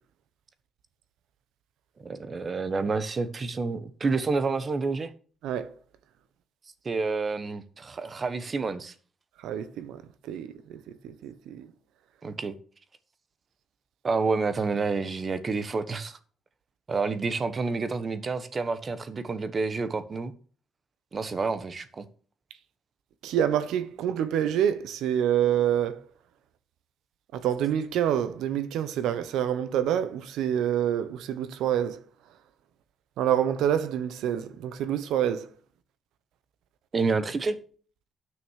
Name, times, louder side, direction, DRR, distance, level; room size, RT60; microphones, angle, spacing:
voice 1, 2.0-5.1 6.8-8.9 12.2-12.5 14.0-16.2 16.9-20.3 21.1-22.0 36.9-37.6, right 4 dB, 35° right, 1.2 m, -29 dB
voice 2, 9.4-10.8 11.0-11.7 23.2-26.0 27.3-32.0 33.2-35.5, right 10 dB, 85° right, 1.1 m, -27 dB
9.7 x 6.2 x 6.5 m
cardioid pair, 90°, 0 cm